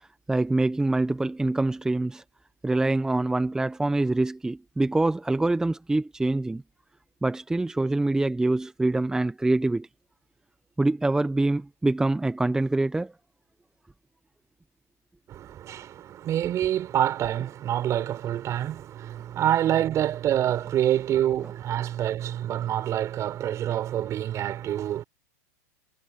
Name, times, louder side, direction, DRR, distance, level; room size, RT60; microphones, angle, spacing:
voice 1, 0.3-2.2 2.6-6.6 7.2-9.9 10.8-13.1, right 2 dB, 5° right, 1.0 m, -25 dB
voice 2, 15.3-25.0, right 11 dB, 35° right, 5.7 m, -26 dB
hypercardioid pair, 115°, 9 cm